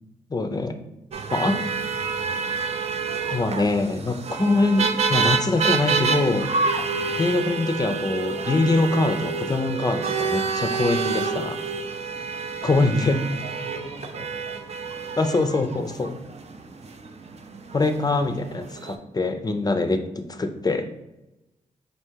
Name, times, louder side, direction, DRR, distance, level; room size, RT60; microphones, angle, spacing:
voice 1, 0.3-0.8 1.3-1.6 3.3-6.5 7.2-11.6 12.6-13.2 15.2-16.2 17.7-20.9, left 2 dB, 30° left, 7 dB, 0.5 m, -23 dB
sound 1, 1.1-18.9, right 5 dB, 50° right, 0.5 m, -28 dB
voice 2, 1.2-2.1 6.9-7.2 12.3-12.9 13.2-14.6, right 2 dB, 80° right, 0 dB, 1.0 m, -42 dB
3.4 x 2.7 x 4.5 m, 0.95 s
cardioid pair, 60°, 14 cm